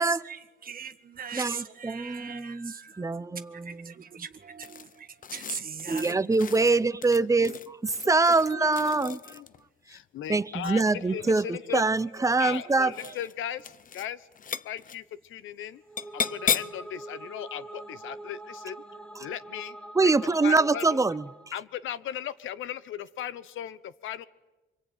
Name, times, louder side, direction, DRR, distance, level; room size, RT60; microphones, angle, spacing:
voice 1, 0.0-6.3 10.6-10.7 12.5-13.2, right 6 dB, 45° right, 1.6 m, -40 dB
voice 2, 1.3-3.9 5.9-9.2 10.3-12.9 20.0-21.2, right 3 dB, 15° right, 0.8 m, -24 dB
sound 1, 4.6-9.6 10.9-11.5 12.2-12.6 12.9-13.3 13.6-14.1 14.3-15.0 16.0-16.8, left 7 dB, 45° left, 0.8 m, -35 dB
voice 3, 7.2-7.6 8.0-9.5 9.9-11.9 12.4-14.3 14.6-15.8 16.1-18.8 19.2-21.0 21.5-24.3, left 10 dB, 80° left, 1.1 m, -38 dB
sound 2, 15.8-21.6, right 2 dB, 5° left, 1.6 m, -44 dB
25.5 x 24.0 x 9.3 m
cardioid pair, 90°, 20 cm